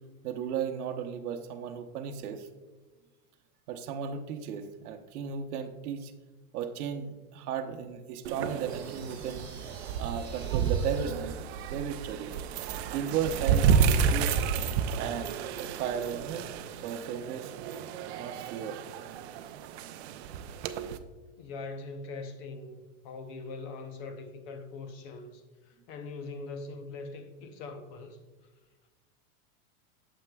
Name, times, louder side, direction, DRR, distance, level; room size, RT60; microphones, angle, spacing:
voice 1, 0.2-2.5 3.7-6.1 6.5-9.4 10.0-12.4 12.9-14.3 15.0-16.5 16.8-17.5 18.1-18.8, right 8 dB, 80° right, 0.8 m, -35 dB
sound 1, 8.2-21.0, right 7 dB, 50° right, 0.5 m, -31 dB
sound 2, 8.7-11.1, right 3 dB, 10° right, 1.7 m, -51 dB
voice 2, 21.4-28.2, left 3 dB, 35° left, 0.6 m, -42 dB
8.8 x 7.2 x 2.3 m
supercardioid pair, 160°, 44 cm